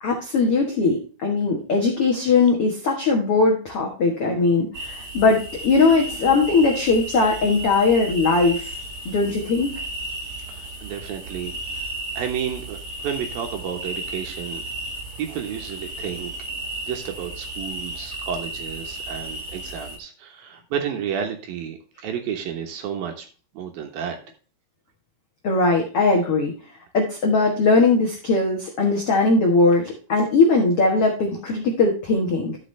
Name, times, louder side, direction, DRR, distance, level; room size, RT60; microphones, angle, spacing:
voice 1, 0.0-8.7 9.0-9.7 25.4-26.5 26.9-32.6, left 3 dB, 80° left, -1 dB, 1.3 m, -20 dB
sound 1, 4.7-20.0, right 1 dB, 45° right, 1.9 m, -34 dB
voice 2, 10.5-11.9 12.2-14.6 15.2-16.3 16.9-23.3 23.5-24.2, right 8 dB, 70° right, 4 dB, 2.6 m, -31 dB
13.0 x 6.0 x 3.3 m, 0.38 s
omnidirectional pair, 5.0 m